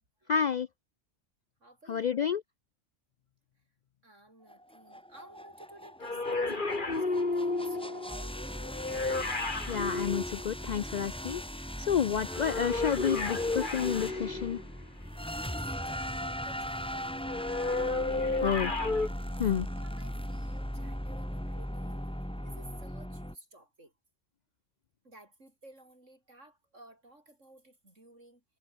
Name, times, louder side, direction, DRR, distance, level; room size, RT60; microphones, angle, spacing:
voice 1, 0.3-0.7 1.9-2.4 9.7-11.4 11.9-14.6 18.4-18.7 19.4-19.7, left 8 dB, 75° left, 0.4 m, -29 dB
voice 2, 1.6-2.2 4.0-8.8 9.9-10.0 15.4-18.8 19.4-22.0 22.4-23.9 25.0-28.4, right 1 dB, 75° right, 8.0 m, -55 dB
sound 1, 4.5-23.4, equal, 5° left, 4.5 m, -39 dB
sound 2, 6.0-11.0 12.3-14.8 17.3-19.1, left 3 dB, 40° left, 2.6 m, -32 dB
omnidirectional pair, 1.3 m